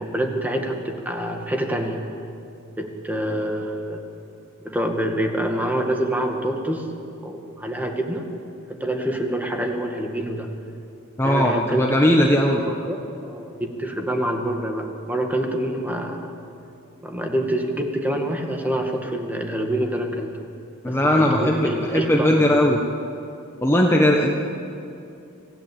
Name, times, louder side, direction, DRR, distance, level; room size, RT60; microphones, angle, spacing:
voice 1, 0.0-2.0 2.8-4.1 4.6-6.9 7.2-8.3 8.7-10.5 11.2-16.3 17.0-20.3 20.9-22.6, right 1 dB, 10° right, 3 dB, 2.1 m, -26 dB
voice 2, 11.2-12.6 20.8-22.8 23.6-24.3, left 1 dB, 10° left, 0 dB, 1.4 m, -18 dB
25.5 x 16.0 x 9.0 m, 2.7 s
head